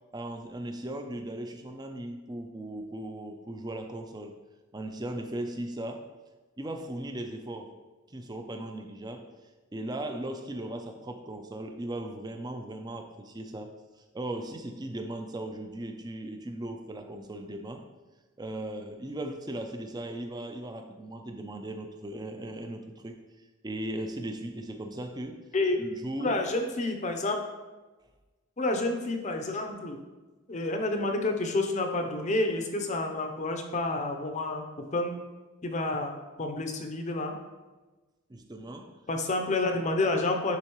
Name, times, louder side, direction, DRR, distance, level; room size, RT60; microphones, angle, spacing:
voice 1, 0.1-4.3 4.7-6.1 6.6-7.8 8.1-9.3 9.7-13.7 14.1-17.9 18.4-23.2 23.6-25.4 25.8-26.4 38.3-39.0, right 1 dB, 20° right, 5 dB, 0.5 m, -37 dB
voice 2, 26.2-27.4 28.6-30.0 30.5-34.6 34.9-35.2 35.6-37.4 39.1-40.6, left 2 dB, 35° left, 4 dB, 0.6 m, -29 dB
9.8 x 3.7 x 3.0 m, 1.2 s
head